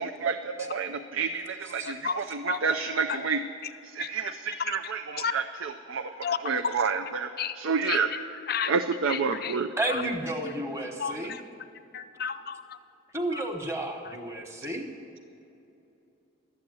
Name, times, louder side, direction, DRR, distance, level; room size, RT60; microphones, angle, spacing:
voice 1, 0.0-3.4 3.8-8.1 8.7-9.7, right 5 dB, 85° right, 6 dB, 0.5 m, -29 dB
voice 2, 1.8-2.2 2.5-2.6 3.1-3.2 4.0-4.3 4.7-4.8 5.2-5.3 6.2-6.4 7.4-7.6 7.9-8.2 8.5-8.7 9.1-9.6 9.9-10.0 11.0-11.4 11.9-12.8 13.3-13.4, left 7 dB, 50° left, 12 dB, 0.5 m, -32 dB
voice 3, 9.8-11.3 13.1-14.9, right 1 dB, 15° right, 3 dB, 1.2 m, -32 dB
12.5 x 8.4 x 9.4 m, 2.8 s
head